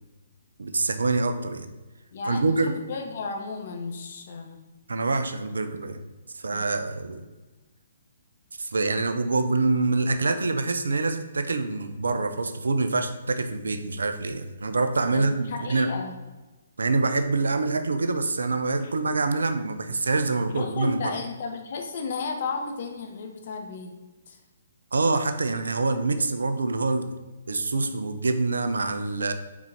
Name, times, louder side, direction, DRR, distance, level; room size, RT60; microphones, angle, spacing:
voice 1, 0.6-1.7 2.3-2.7 4.9-6.0 6.3-7.2 8.6-15.9 16.8-21.1 24.9-27.1 27.5-29.3, right 3 dB, 70° right, 9 dB, 0.7 m, -25 dB
voice 2, 2.1-4.6 6.5-6.6 15.1-16.1 20.5-23.9 24.3-24.4, left 4 dB, 50° left, 3 dB, 1.3 m, -34 dB
6.1 x 4.5 x 5.6 m, 1.2 s
figure-of-eight pair, 130°, 0 cm